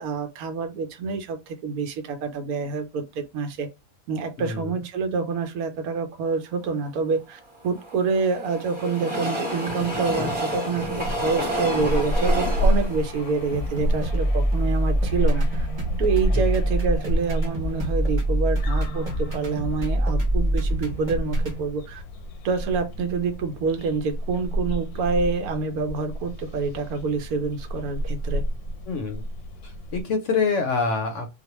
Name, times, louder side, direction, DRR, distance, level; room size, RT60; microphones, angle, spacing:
voice 1, 0.0-3.7 4.1-15.7 16.0-22.0 22.4-28.5, right 4 dB, 80° right, 1.1 m, -27 dB
voice 2, 4.4-4.8 16.3-16.4 28.9-29.2 29.6-31.3, left 4 dB, 65° left, 0.8 m, -26 dB
Train, 7.3-14.6 15.1-15.2 15.4-15.5, equal, 5° right, 1.0 m, -30 dB
sound 1, 10.8-30.0, right 1 dB, 85° left, 1.1 m, -29 dB
sound 2, 13.5-21.6, right 1 dB, 40° right, 0.8 m, -26 dB
2.4 x 2.2 x 2.9 m
omnidirectional pair, 1.5 m